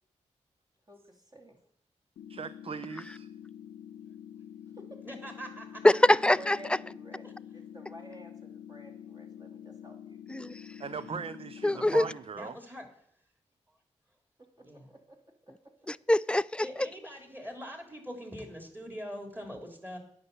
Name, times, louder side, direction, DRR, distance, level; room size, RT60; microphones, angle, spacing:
voice 1, 0.9-1.6 4.7-4.9 6.4-7.2 7.5-10.2 14.6-15.2 15.4-15.5 16.7-16.8, right 1 dB, 35° right, 2.9 m, -51 dB
sound 1, 2.2-12.2, left 9 dB, 85° left, 0.5 m, -47 dB
voice 2, 2.3-3.3 10.8-12.6, right 6 dB, 50° right, 0.5 m, -39 dB
voice 3, 5.0-5.8 7.2-7.3 11.8-12.0 12.3-12.9 14.6-14.9 16.6-20.0, equal, 15° right, 3.1 m, -43 dB
voice 4, 5.8-6.6 10.3-10.6 11.6-12.1 15.9-16.7, left 1 dB, 10° left, 0.3 m, -23 dB
9.5 x 5.6 x 7.0 m
supercardioid pair, 40°, 12 cm